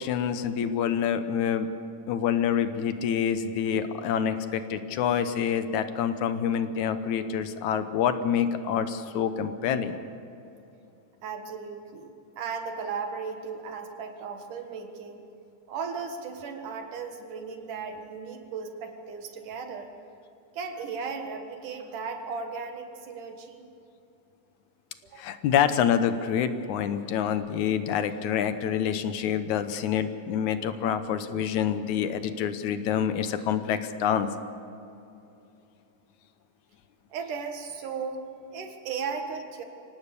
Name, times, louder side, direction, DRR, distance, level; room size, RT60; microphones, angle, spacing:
voice 1, 0.0-1.7 2.1-10.0 25.2-34.3, left 8 dB, 75° left, 10 dB, 2.2 m, -27 dB
voice 2, 11.2-15.2 15.7-19.9 20.5-23.7 25.0-25.3 37.1-39.6, right 5 dB, 80° right, 5 dB, 3.2 m, -36 dB
25.0 x 18.0 x 7.0 m, 2.8 s
omnidirectional pair, 3.6 m